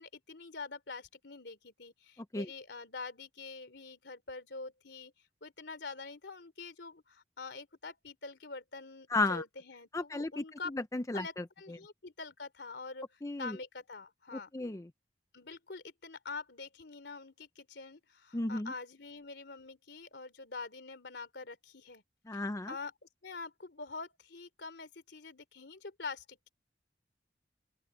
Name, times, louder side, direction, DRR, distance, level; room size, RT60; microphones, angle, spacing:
voice 1, 0.0-5.1 5.4-10.7 11.1-14.5 15.3-22.0 22.3-26.5, left 4 dB, 75° left, 3.0 m, -45 dB
voice 2, 9.1-9.4 9.9-11.4 13.2-13.6 14.3-14.9 18.3-18.7 22.3-22.7, left 2 dB, 20° left, 0.5 m, -34 dB
open air
head